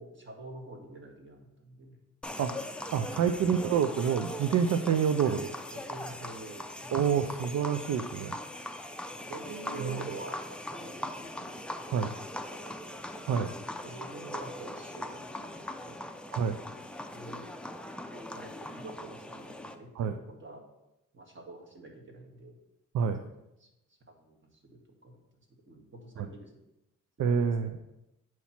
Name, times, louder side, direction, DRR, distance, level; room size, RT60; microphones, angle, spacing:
voice 1, 0.0-2.0 2.3-2.4 3.0-3.7 5.2-5.4 5.7-7.3 9.3-11.6 11.9-12.0 12.5-12.7 13.8-16.1 17.1-17.5 18.1-20.6 21.1-22.6 23.2-23.3 23.6-23.7 24.2-26.6, right 2 dB, 35° right, 1 dB, 1.7 m, -47 dB
sound 1, 2.2-19.7, left 1 dB, 5° left, 0.5 m, -41 dB
voice 2, 2.9-5.4 6.9-8.4 9.8-10.0 11.9-12.1 13.3-13.5 16.3-16.6 20.0-20.1 22.9-23.2 26.2-26.3 27.2-27.8, right 7 dB, 65° right, 7 dB, 0.5 m, -27 dB
8.1 x 3.1 x 5.7 m, 0.91 s
cardioid pair, 85°, 32 cm